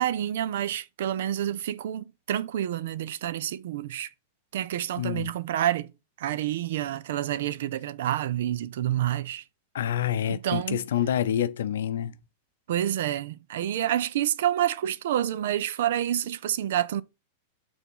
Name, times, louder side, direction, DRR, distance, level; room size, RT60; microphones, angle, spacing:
voice 1, 0.0-4.1 4.5-5.9 6.2-9.4 10.3-10.8 12.7-17.0, right 11 dB, 75° right, 0.5 m, -28 dB
voice 2, 5.0-5.3 9.7-12.1, left 10 dB, 85° left, 0.5 m, -27 dB
5.9 x 3.5 x 5.4 m
hypercardioid pair, 130°, 0 cm